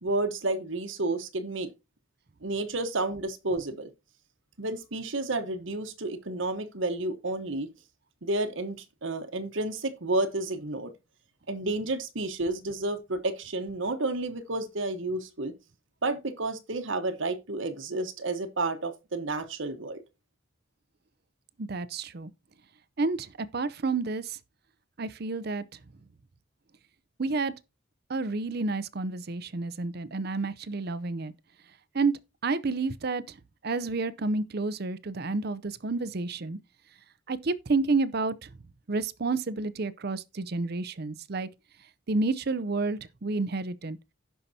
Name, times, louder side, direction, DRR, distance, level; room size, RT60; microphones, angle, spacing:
voice 1, 0.0-1.7 2.4-3.9 4.6-7.7 8.2-10.9 11.5-15.5 16.0-20.0, right 2 dB, 70° right, 1.1 m, -31 dB
voice 2, 21.6-22.3 23.0-24.4 25.0-25.6 27.2-27.5 28.1-31.3 31.9-32.1 32.4-33.4 33.6-36.6 37.3-38.5 38.9-41.5 42.1-44.0, right 3 dB, 50° right, 0.6 m, -30 dB
16.5 x 5.6 x 2.8 m
head